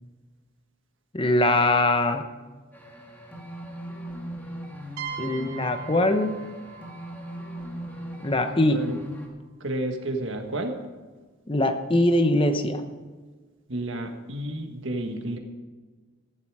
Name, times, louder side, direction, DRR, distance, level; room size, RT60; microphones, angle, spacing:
voice 1, 1.1-2.2 5.2-6.3 8.2-8.9 11.5-12.8, left 1 dB, 25° left, 8 dB, 0.9 m, -22 dB
sound 1, 2.7-9.3, equal, 10° left, 1.9 m, -39 dB
sound 2, 5.0-8.6, right 8 dB, 75° right, 2.0 m, -41 dB
voice 2, 9.6-10.8 13.7-15.4, right 1 dB, 60° right, 4 dB, 1.6 m, -31 dB
14.5 x 11.0 x 4.8 m, 1.4 s
head